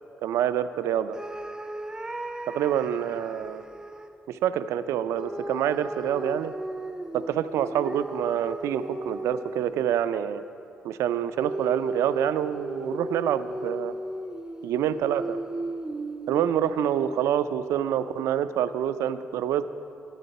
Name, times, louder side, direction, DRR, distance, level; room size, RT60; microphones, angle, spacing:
voice 1, 0.2-1.2 2.5-3.6 4.3-6.5 7.1-10.4 10.8-13.9 14.6-15.4 16.3-19.6, right 10 dB, 85° right, 12 dB, 0.4 m, -27 dB
sound 1, 1.1-4.1 5.2-9.9 11.4-17.5, right 2 dB, 10° right, 0.6 m, -36 dB
11.0 x 9.9 x 4.1 m, 2.7 s
cardioid pair, 70°, 5 cm